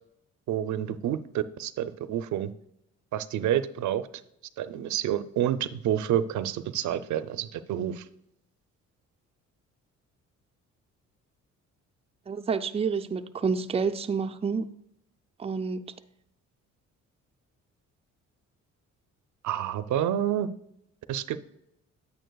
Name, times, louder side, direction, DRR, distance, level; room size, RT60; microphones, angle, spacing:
voice 1, 0.5-2.5 3.1-4.1 4.6-8.1 19.4-20.5 21.1-21.4, right 11 dB, 75° right, 0.5 m, -28 dB
voice 2, 12.3-14.7 15.4-15.9, right 5 dB, 20° right, 0.5 m, -29 dB
9.1 x 8.5 x 2.3 m
cardioid pair, 90°, 30 cm